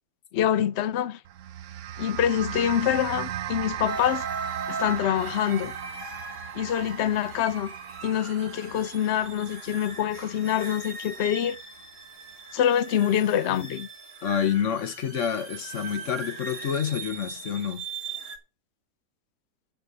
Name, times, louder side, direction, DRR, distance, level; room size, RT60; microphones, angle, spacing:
voice 1, 0.3-1.2 2.0-4.2 4.7-5.7 6.5-7.7 8.0-11.6 12.5-13.9, left 10 dB, 75° left, 0.6 m, -25 dB
sound 1, 1.2-11.8, right 11 dB, 60° right, 0.8 m, -38 dB
sound 2, 3.9-18.4, right 4 dB, 45° right, 2.8 m, -39 dB
voice 2, 14.2-17.9, left 8 dB, 50° left, 1.1 m, -28 dB
9.3 x 5.4 x 8.0 m
omnidirectional pair, 1.9 m